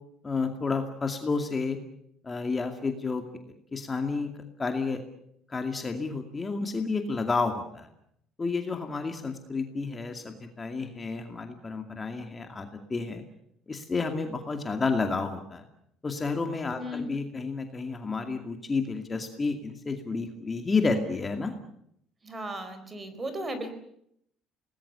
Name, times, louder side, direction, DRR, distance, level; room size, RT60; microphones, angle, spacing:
voice 1, 0.2-1.8 2.2-3.2 3.7-4.3 4.6-5.0 5.5-7.9 8.4-13.2 13.7-15.6 16.0-21.5, left 4 dB, 20° left, 5 dB, 2.3 m, -30 dB
voice 2, 16.8-17.1 22.2-23.8, equal, 20° right, 10 dB, 4.4 m, -35 dB
27.5 x 19.5 x 6.9 m, 0.71 s
cardioid pair, 125°, 0 cm